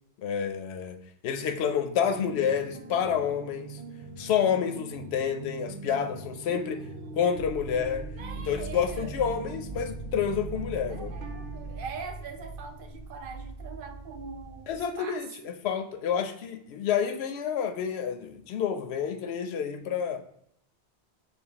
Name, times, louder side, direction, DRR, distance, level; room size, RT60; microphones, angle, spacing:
voice 1, 0.2-1.0 1.2-3.8 4.2-6.8 7.2-8.1 8.5-11.1 14.7-20.2, left 8 dB, 80° left, 7 dB, 0.8 m, -29 dB
sound 1, 2.1-11.9, right 3 dB, 85° right, 0.9 m, -42 dB
voice 2, 6.5-7.4 8.2-9.2 10.9-15.2, right 5 dB, 60° right, 5 dB, 0.7 m, -43 dB
sound 2, 7.3-14.8, right 3 dB, 45° right, 1.1 m, -41 dB
6.8 x 2.3 x 2.9 m, 0.73 s
omnidirectional pair, 1.1 m